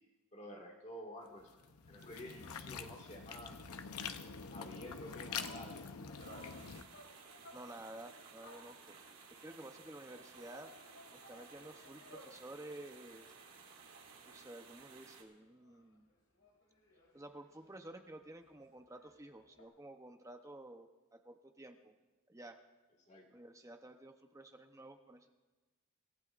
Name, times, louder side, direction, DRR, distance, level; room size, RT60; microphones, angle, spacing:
voice 1, 0.3-1.6 1.9-3.5 4.5-6.5 23.1-23.3, equal, 30° left, 0 dB, 2.0 m, -51 dB
sound 1, 1.4-6.8, left 6 dB, 90° left, 0.8 m, -46 dB
sound 2, 4.8-9.2 10.1-12.5 12.8-14.7 15.1-15.2 15.5-19.7, left 1 dB, 70° left, 3.6 m, -60 dB
sound 3, 6.2-15.2, right 5 dB, 75° right, 2.4 m, -57 dB
voice 2, 7.5-8.9 9.4-10.7 11.1-13.2 14.2-16.1 17.1-21.9 22.3-22.6 23.3-25.3, right 1 dB, 15° right, 5 dB, 0.8 m, -52 dB
26.0 x 15.5 x 2.5 m, 1.2 s
head